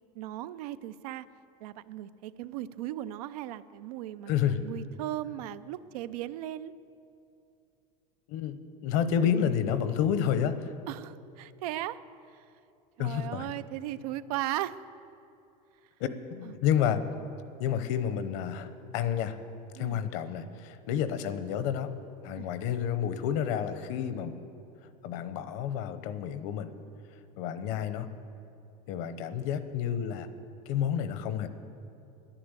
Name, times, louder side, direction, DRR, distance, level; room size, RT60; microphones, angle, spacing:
voice 1, 0.1-1.2 1.6-6.7 10.9-12.0 12.3-12.4 13.0-14.8 16.4-16.6 19.7-20.0 22.3-22.5, right 14 dB, 85° right, 14 dB, 0.5 m, -37 dB
voice 2, 4.3-4.6 8.3-8.5 8.8-10.7 13.0-13.5 16.0-17.0 17.6-19.4 19.7-21.9 22.2-24.4 25.0-26.7 27.4-28.1 28.9-30.3 30.7-31.5, left 9 dB, 60° left, 12 dB, 0.9 m, -30 dB
10.5 x 10.0 x 8.1 m, 2.7 s
supercardioid pair, 155°, 19 cm